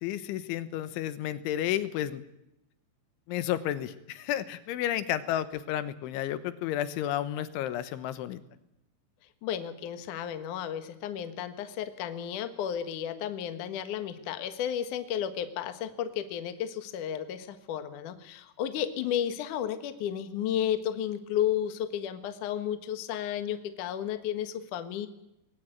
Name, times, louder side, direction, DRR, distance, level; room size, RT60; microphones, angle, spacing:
voice 1, 0.0-2.2 3.3-8.4, left 12 dB, 80° left, 13 dB, 3.4 m, -32 dB
voice 2, 9.4-25.1, left 10 dB, 60° left, 9 dB, 2.2 m, -33 dB
21.0 x 17.0 x 9.1 m, 0.86 s
omnidirectional pair, 5.5 m